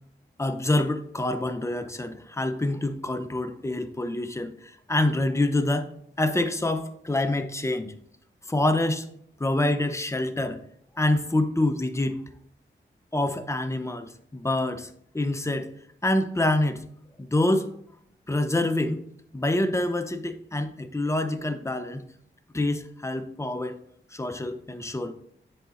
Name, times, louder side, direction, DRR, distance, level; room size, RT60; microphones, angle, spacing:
voice 1, 0.4-4.5 4.9-5.9 6.2-7.9 8.5-9.1 9.4-10.6 11.0-12.2 13.1-14.9 15.1-15.7 16.0-16.8 17.2-17.7 18.3-19.0 19.3-22.0 22.5-23.8 24.1-25.1, left 1 dB, 15° left, 8 dB, 0.6 m, -26 dB
9.9 x 3.9 x 2.5 m, 0.67 s
cardioid pair, 55°, 21 cm